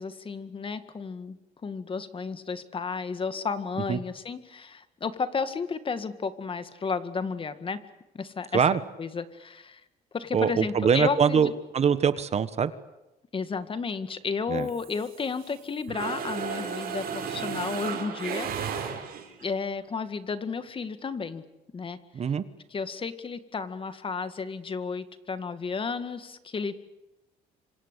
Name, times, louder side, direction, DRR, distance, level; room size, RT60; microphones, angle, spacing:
voice 1, 0.0-7.8 8.1-8.6 9.0-9.8 10.1-11.5 13.3-18.9 19.4-21.4 21.7-22.0 22.7-26.8, left 5 dB, 30° left, 11 dB, 2.0 m, -32 dB
voice 2, 10.3-12.7 14.5-14.7 22.1-22.4, right 7 dB, 40° right, 13 dB, 1.5 m, -23 dB
Mechanisms, 14.6-15.6 15.9-19.4, right 7 dB, 65° right, 6.2 m, -34 dB
26.5 x 25.5 x 8.3 m, 0.98 s
cardioid pair, 110°, 17 cm